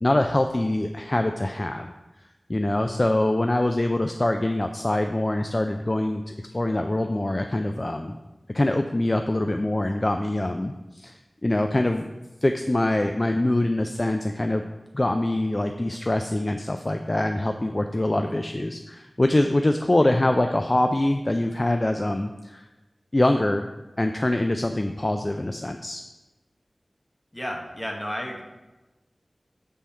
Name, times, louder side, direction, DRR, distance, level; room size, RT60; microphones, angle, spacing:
voice 1, 0.0-1.9 2.5-8.2 8.5-12.0 12.4-14.6 14.9-22.6 23.1-23.6 24.0-26.0, left 1 dB, 35° left, 5 dB, 0.3 m, -24 dB
voice 2, 27.3-28.4, equal, 15° left, 0 dB, 1.0 m, -32 dB
7.4 x 3.5 x 4.2 m, 1.1 s
wide cardioid pair, 65°, 0 cm